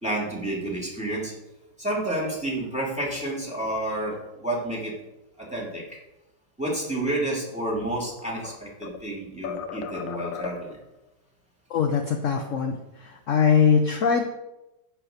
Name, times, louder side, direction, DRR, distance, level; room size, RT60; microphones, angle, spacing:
voice 1, 0.0-1.3 1.8-4.9 5.4-5.8 6.6-10.8, right 1 dB, 5° right, -3 dB, 3.0 m, -30 dB
sound 1, 7.8-9.1 9.4-10.9, left 8 dB, 90° left, 1.5 m, -36 dB
voice 2, 11.7-14.3, left 6 dB, 55° left, 4 dB, 1.0 m, -22 dB
10.5 x 5.0 x 8.0 m, 0.95 s
omnidirectional pair, 1.9 m